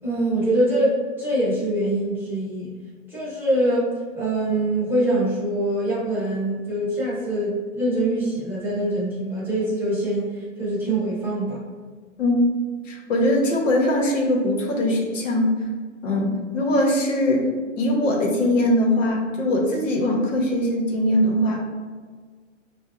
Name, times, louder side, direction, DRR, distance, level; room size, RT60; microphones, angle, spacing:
voice 1, 0.0-2.7 3.1-11.6, right 1 dB, 5° right, -10 dB, 0.8 m, -24 dB
voice 2, 12.8-15.5 16.0-17.5 17.8-21.6, left 1 dB, 80° left, 0 dB, 1.1 m, -21 dB
5.6 x 2.4 x 2.4 m, 1.5 s
hypercardioid pair, 155°, 38 cm